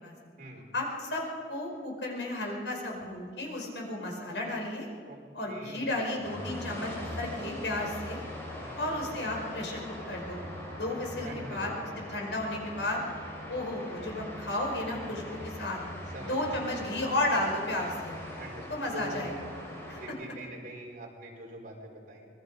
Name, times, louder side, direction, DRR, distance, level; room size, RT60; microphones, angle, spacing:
voice 1, 0.7-1.2 1.5-4.9 5.3-8.2 8.8-9.8 10.1-10.4 10.8-11.7 12.1-13.0 13.5-15.8 16.2-18.2 18.7-19.4 19.9-20.0, left 1 dB, 85° left, 0 dB, 5.0 m, -33 dB
voice 2, 5.5-6.1 8.6-8.8 11.2-12.1 15.0-15.2 16.1-17.0 18.4-19.3 19.9-22.3, right 1 dB, 50° right, -1 dB, 4.7 m, -44 dB
sound 1, 6.2-20.1, left 1 dB, 15° left, 5.6 m, -41 dB
25.0 x 21.0 x 5.4 m, 2.2 s
head